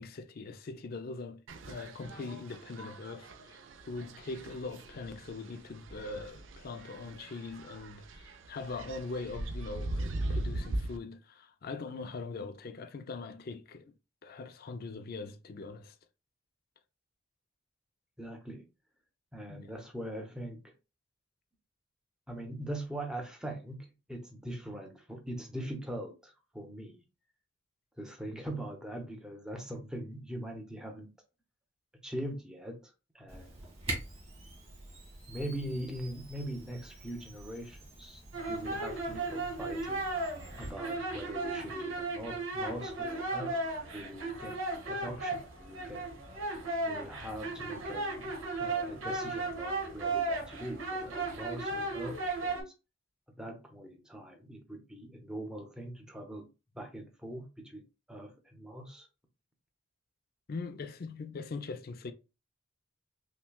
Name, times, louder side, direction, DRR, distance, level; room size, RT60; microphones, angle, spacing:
voice 1, 0.0-3.6 3.8-13.9 14.2-15.9 19.5-19.7 60.5-62.1, left 3 dB, 50° left, 0.4 m, -42 dB
sound 1, 1.5-11.0, right 1 dB, 65° right, 0.5 m, -40 dB
voice 2, 18.2-18.6 19.3-20.7 22.3-27.0 28.0-31.1 32.0-33.6 35.3-38.2 38.5-40.0 40.6-43.6 43.9-44.6 44.9-46.0 46.8-48.3 48.6-52.7 53.4-56.5 56.7-57.8 58.1-59.1, right 1 dB, 5° right, 0.8 m, -42 dB
Camera, 33.3-40.7, right 1 dB, 30° right, 1.9 m, -45 dB
sound 2, 38.3-52.6, right 2 dB, 85° right, 1.4 m, -35 dB
5.8 x 2.2 x 2.3 m
head